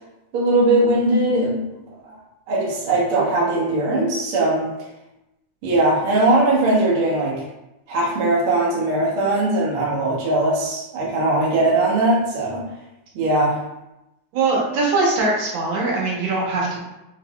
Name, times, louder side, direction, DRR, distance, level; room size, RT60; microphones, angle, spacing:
voice 1, 0.3-1.8 2.0-2.2 2.5-4.7 5.6-7.4 7.9-12.7 13.1-13.6, right 2 dB, 85° right, -4 dB, 1.1 m, -20 dB
voice 2, 14.3-16.9, right 3 dB, 70° right, -3 dB, 1.6 m, -21 dB
6.1 x 2.8 x 2.3 m, 0.92 s
omnidirectional pair, 3.9 m